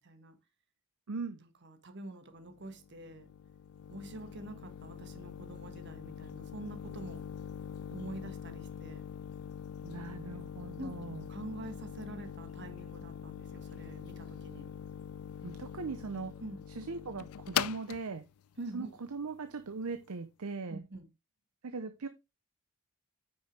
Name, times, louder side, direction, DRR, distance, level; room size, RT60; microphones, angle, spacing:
voice 1, 0.0-0.3 1.4-3.3 3.9-7.2 7.9-9.1 10.8-10.9 11.3-14.7 16.4-16.6 18.6-18.9 20.7-21.1, right 2 dB, 55° right, 1.4 m, -46 dB
voice 2, 1.1-1.4 9.8-11.3 15.4-16.4 16.7-18.2 18.7-20.8 21.6-22.1, right 4 dB, 90° right, 0.7 m, -39 dB
sound 1, 2.5-20.1, left 9 dB, 80° left, 0.4 m, -43 dB
9.0 x 6.4 x 3.3 m
head